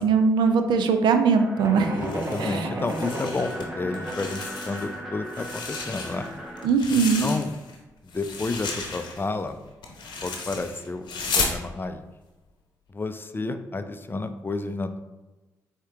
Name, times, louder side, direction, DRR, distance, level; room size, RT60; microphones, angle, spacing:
voice 1, 0.0-2.1 2.4-2.7 6.6-7.3, right 5 dB, 70° right, 7 dB, 0.4 m, -21 dB
sound 1, 1.3-6.7, equal, 5° right, 1.1 m, -39 dB
sound 2, 1.6-4.5, right 1 dB, 35° right, 0.8 m, -33 dB
sound 3, 1.9-3.6 3.9-4.9 5.3-7.8 8.1-11.6, left 4 dB, 65° left, 0.8 m, -33 dB
voice 2, 2.0-6.3 6.9-7.5 8.0-9.6 10.2-11.1 11.3-12.0 12.9-15.0, left 3 dB, 25° left, 9 dB, 0.4 m, -31 dB
4.5 x 2.8 x 3.4 m, 1.1 s
hypercardioid pair, 40°, 8 cm